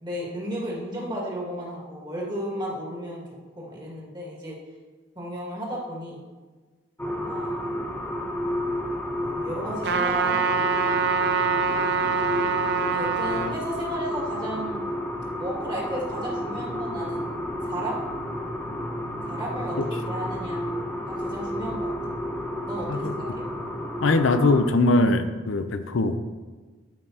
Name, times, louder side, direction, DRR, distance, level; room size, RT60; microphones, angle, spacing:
voice 1, 0.0-3.2 3.6-4.6 5.2-6.2 7.0-7.8 9.2-10.9 12.8-14.9 15.4-17.2 17.6-18.1 19.2-20.6 21.1-21.9 22.7-23.3, equal, 25° right, -4 dB, 2.0 m, -34 dB
sound 1, 7.0-24.7, equal, 10° left, 0.7 m, -31 dB
Trumpet, 9.8-13.5, right 5 dB, 60° right, 0.5 m, -24 dB
voice 2, 24.0-26.2, left 2 dB, 90° left, 9 dB, 0.6 m, -21 dB
12.0 x 5.4 x 2.8 m, 1.4 s
head